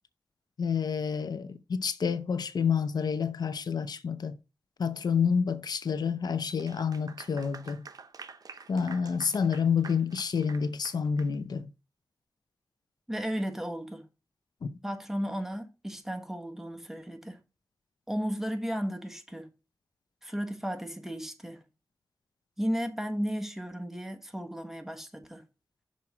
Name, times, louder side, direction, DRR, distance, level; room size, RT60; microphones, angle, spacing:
voice 1, 0.6-4.3 4.8-7.9 8.7-11.7 14.6-14.7, left 6 dB, 85° left, 0.6 m, -29 dB
Clapping / Applause, 6.5-11.3, right 4 dB, 65° right, 0.7 m, -48 dB
voice 2, 13.1-14.1 14.8-17.4 18.1-19.5 20.2-21.6 22.6-25.4, equal, 5° right, 1.2 m, -34 dB
6.2 x 4.2 x 5.9 m
wide cardioid pair, 65°, 7 cm